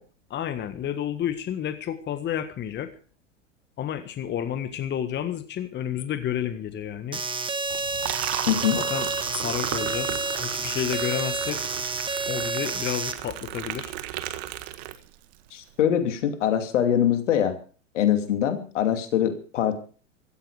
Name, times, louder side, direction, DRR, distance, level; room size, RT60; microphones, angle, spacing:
voice 1, 0.3-2.9 3.8-7.2 8.7-9.1 9.3-11.7 12.3-13.9, left 10 dB, 30° left, 10 dB, 1.6 m, -30 dB
sound 1, 7.1-13.1, right 3 dB, 15° right, 1.7 m, -29 dB
Liquid, 7.6-15.3, right 13 dB, 55° right, 1.8 m, -35 dB
voice 2, 8.5-8.8 15.5-17.6 17.9-19.8, left 10 dB, 70° left, 8 dB, 2.7 m, -23 dB
16.0 x 14.5 x 4.9 m, 0.39 s
hypercardioid pair, 100°, 38 cm